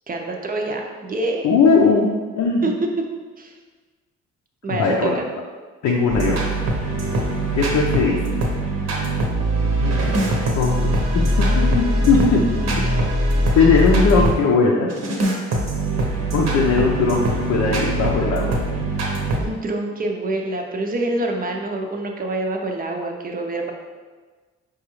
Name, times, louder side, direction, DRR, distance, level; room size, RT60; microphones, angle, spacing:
voice 1, 0.1-1.5 2.6-2.7 3.0-3.1 3.4-3.5 4.6-5.2 12.9-13.0 19.4-23.7, right 2 dB, 30° right, 2 dB, 0.5 m, -26 dB
voice 2, 1.4-2.1 2.4-2.7 4.7-5.2 5.8-6.4 7.5-8.2 9.8-10.1 10.6-12.8 13.6-14.9 16.3-18.7, left 4 dB, 70° left, -2 dB, 0.6 m, -19 dB
sound 1, 6.1-14.4 14.9-19.4, right 1 dB, 60° right, 0.8 m, -22 dB
4.9 x 2.3 x 3.0 m, 1.4 s
cardioid pair, 90°, 30 cm